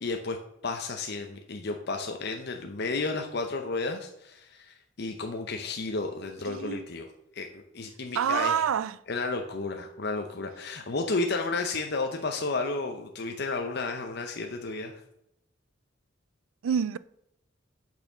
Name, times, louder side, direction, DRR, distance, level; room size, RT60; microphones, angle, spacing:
voice 1, 0.0-0.4 0.6-7.1 7.3-8.5 9.1-15.0, left 3 dB, 55° left, 0.7 m, -32 dB
voice 2, 6.5-6.9 8.1-9.0 16.6-17.0, right 8 dB, 80° right, 0.4 m, -27 dB
8.2 x 4.4 x 6.0 m
head